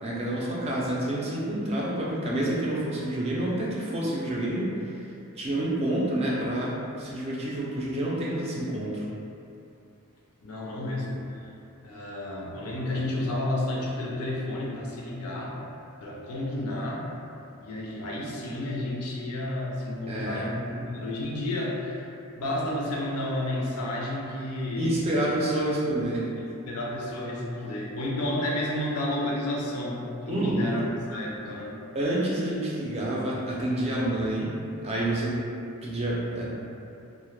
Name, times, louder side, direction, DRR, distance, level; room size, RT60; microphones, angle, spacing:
voice 1, 0.0-4.7 5.4-9.1 20.1-20.5 24.8-26.3 30.3-30.6 31.9-34.5 34.8-35.5 35.8-36.5, right 1 dB, 25° right, -5 dB, 0.3 m, -28 dB
voice 2, 10.4-11.3 11.8-15.6 16.0-17.1 17.6-22.1 22.4-25.0 26.4-31.8, left 1 dB, 80° left, -3 dB, 0.4 m, -31 dB
2.1 x 2.0 x 3.0 m, 2.7 s
head